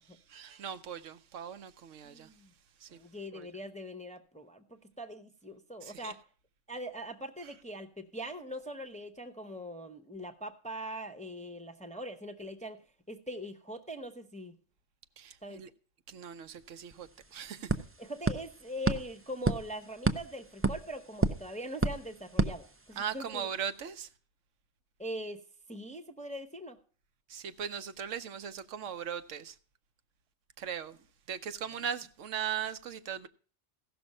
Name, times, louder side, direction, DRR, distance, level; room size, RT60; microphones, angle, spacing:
voice 1, 0.3-2.3 2.8-3.0 3.3-3.5 5.8-6.1 15.2-15.7 16.1-17.7 23.0-24.1 27.3-29.5 30.6-31.0 31.3-33.3, right 8 dB, 80° right, 1.1 m, -39 dB
voice 2, 2.0-2.5 2.9-6.2 6.7-12.8 13.1-14.5 15.4-15.6 18.0-23.5 25.0-25.4 25.7-26.8, equal, 5° left, 0.7 m, -42 dB
sound 1, 16.6-16.7 16.9-23.3, right 3 dB, 20° right, 0.3 m, -33 dB
16.0 x 6.2 x 5.3 m
omnidirectional pair, 1.3 m